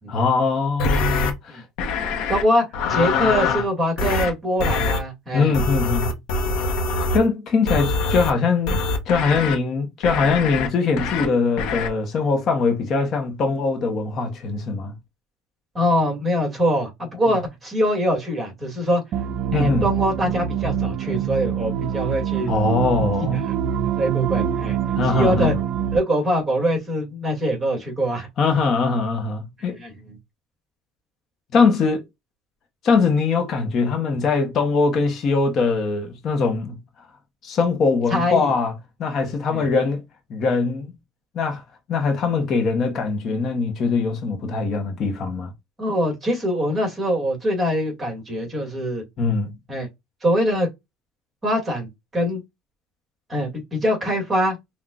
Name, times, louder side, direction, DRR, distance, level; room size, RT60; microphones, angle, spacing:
voice 1, 0.1-1.6 5.3-6.2 7.1-14.9 19.5-19.9 22.5-23.5 24.9-25.5 28.4-29.8 31.5-32.0 32.8-36.8 37.4-38.7 39.0-40.0 40.3-40.9 41.3-41.6 41.9-45.5 49.2-49.5, left 4 dB, 45° left, 0.9 m, -22 dB
sound 1, 0.8-1.3 1.8-2.4 2.7-3.7 4.0-4.3 4.6-5.0 5.5-7.2 7.7-8.3 8.7-9.6 10.0-10.7 11.0-11.3 11.6-11.9, left 3 dB, 75° left, 0.9 m, -23 dB
voice 2, 2.3-5.6 15.7-19.0 19.5-22.5 23.3-23.4 24.0-24.8 25.0-25.5 25.9-28.3 29.8-30.2 38.1-38.5 39.5-39.7 45.8-49.0 49.7-49.9 50.2-50.7 51.4-52.4 53.3-54.6, equal, 15° right, 2.1 m, -23 dB
sound 2, 19.1-26.0, right 9 dB, 50° right, 0.4 m, -25 dB
5.8 x 2.3 x 2.4 m
cardioid pair, 125°, 0 cm